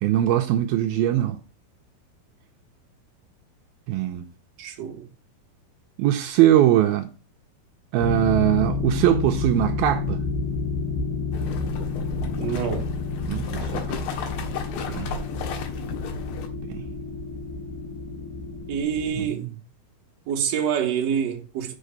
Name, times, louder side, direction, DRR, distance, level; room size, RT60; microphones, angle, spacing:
voice 1, 0.0-1.4 3.9-4.3 6.0-7.1 7.9-10.2 13.3-14.0 14.9-15.1 16.7-16.8 19.1-19.5, right 12 dB, 80° right, 2.5 m, -21 dB
voice 2, 4.6-5.1 12.4-12.9 18.7-19.5 20.3-21.7, right 8 dB, 55° right, 2.3 m, -26 dB
sound 1, 8.0-19.3, left 4 dB, 60° left, 3.2 m, -30 dB
sound 2, 11.3-16.5, left 6 dB, 80° left, 3.3 m, -35 dB
7.7 x 5.7 x 6.7 m
omnidirectional pair, 4.5 m